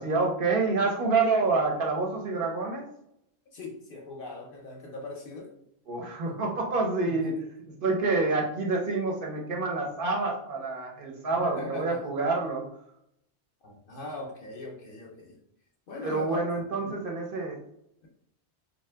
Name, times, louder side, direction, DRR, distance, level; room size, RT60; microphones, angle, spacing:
voice 1, 0.0-2.8 5.9-7.4 7.8-12.6 16.0-17.6, right 3 dB, 55° right, -1 dB, 0.7 m, -27 dB
voice 2, 3.5-5.5 7.1-7.4 11.3-12.0 13.6-15.4 15.9-16.4 16.8-17.0, left 2 dB, 60° left, 0 dB, 0.7 m, -40 dB
2.7 x 2.1 x 3.3 m, 0.76 s
omnidirectional pair, 1.2 m